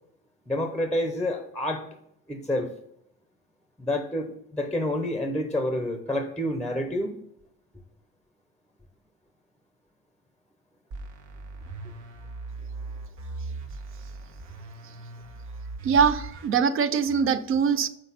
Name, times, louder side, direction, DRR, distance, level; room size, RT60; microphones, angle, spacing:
voice 1, 0.5-1.8 2.3-2.7 3.8-7.2, left 1 dB, 5° left, 6 dB, 0.7 m, -28 dB
sound 1, 10.9-16.5, right 3 dB, 70° right, 1.6 m, -39 dB
voice 2, 15.8-17.9, right 6 dB, 45° right, 13 dB, 0.6 m, -22 dB
6.3 x 4.9 x 5.6 m, 0.76 s
cardioid pair, 155°, 30 cm